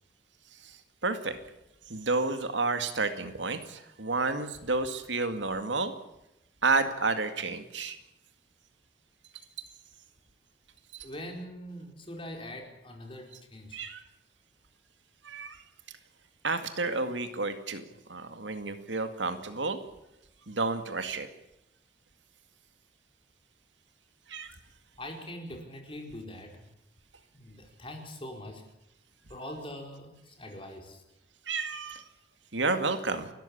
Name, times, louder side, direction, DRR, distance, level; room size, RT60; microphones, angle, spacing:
voice 1, 0.6-1.4 1.9-5.9 6.6-8.0 10.9-11.1 13.7-14.0 15.2-15.6 16.4-19.8 20.5-21.3 24.3-24.6 31.5-32.0 32.5-33.3, right 3 dB, 85° right, 8 dB, 2.2 m, -31 dB
voice 2, 11.0-13.8 25.0-26.7 27.3-28.6 29.3-31.0, left 1 dB, 30° left, 3 dB, 4.8 m, -43 dB
29.5 x 14.0 x 8.6 m, 0.87 s
head